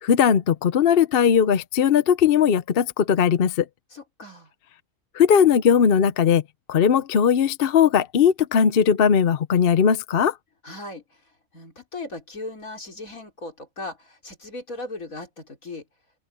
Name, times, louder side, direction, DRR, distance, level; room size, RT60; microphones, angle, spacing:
voice 1, 0.0-3.7 5.1-6.4 6.7-10.3, left 7 dB, 50° left, 0.8 m, -19 dB
voice 2, 3.9-4.5 10.6-11.2 11.5-15.8, left 2 dB, 75° left, 4.5 m, -37 dB
open air
omnidirectional pair, 1.5 m